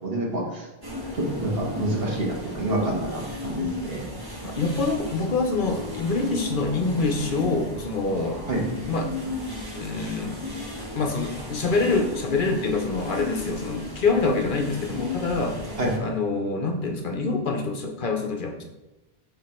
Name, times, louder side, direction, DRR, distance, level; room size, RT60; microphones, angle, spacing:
voice 1, 0.0-0.6 1.4-4.1 8.5-8.6 15.8-15.9, right 1 dB, 70° right, -2 dB, 1.6 m, -28 dB
sound 1, 0.8-16.0, left 2 dB, 20° right, 1.1 m, -35 dB
voice 2, 4.5-8.4 8.9-9.1 9.7-10.5 10.9-15.6 16.0-18.6, left 3 dB, 55° left, 3 dB, 0.9 m, -26 dB
5.9 x 3.7 x 4.4 m, 1.0 s
omnidirectional pair, 1.0 m